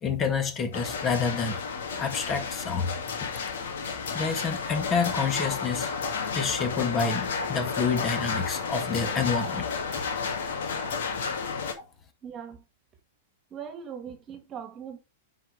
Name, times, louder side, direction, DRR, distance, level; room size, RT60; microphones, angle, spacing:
voice 1, 0.0-1.6 2.0-2.9 3.2-3.4 4.1-5.9 6.3-9.7 10.0-10.1, left 5 dB, 30° left, 1.9 m, -28 dB
sound 1, 0.7-11.7, left 5 dB, 70° left, 2.2 m, -32 dB
voice 2, 12.2-12.6 13.5-15.0, right 7 dB, 30° right, 1.7 m, -40 dB
10.0 x 4.6 x 3.4 m
hypercardioid pair, 110°, 0 cm